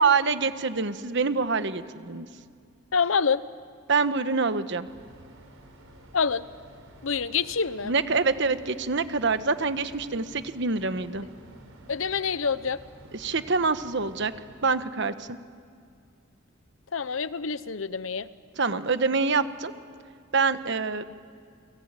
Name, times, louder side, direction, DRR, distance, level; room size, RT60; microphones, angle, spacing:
voice 1, 0.0-2.3 3.9-4.9 7.8-11.3 13.1-14.3 14.6-15.4 18.6-19.7 20.3-21.0, right 4 dB, 60° right, 11 dB, 1.2 m, -25 dB
voice 2, 2.9-3.4 6.1-6.4 7.0-7.9 11.9-12.8 16.9-18.3, left 5 dB, 75° left, 16 dB, 0.8 m, -26 dB
sound 1, 4.8-14.9, right 1 dB, 85° right, 4.6 m, -51 dB
29.5 x 21.0 x 9.0 m, 2.3 s
head